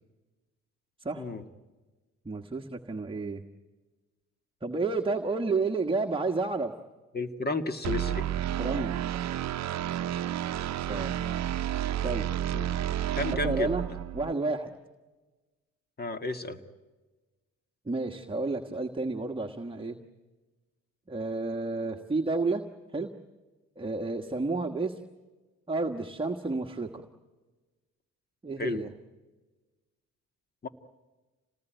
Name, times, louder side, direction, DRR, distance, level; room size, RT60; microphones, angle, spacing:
voice 1, 2.2-3.4 4.6-6.7 8.6-8.9 10.9-11.2 12.0-12.3 13.3-13.8 14.1-14.7 17.9-20.0 21.1-22.6 22.9-23.1 23.8-25.0 25.7-27.0 28.4-28.9, right 3 dB, 15° right, 4 dB, 1.4 m, -30 dB
voice 2, 7.1-8.3 12.5-12.8 13.2-13.7 16.0-16.6 28.6-28.8 30.6-30.7, left 3 dB, 30° left, 8 dB, 2.0 m, -32 dB
sound 1, 7.8-14.3, right 11 dB, 60° right, 0.8 m, -31 dB
27.5 x 19.5 x 9.1 m, 1.2 s
cardioid pair, 90°, 30 cm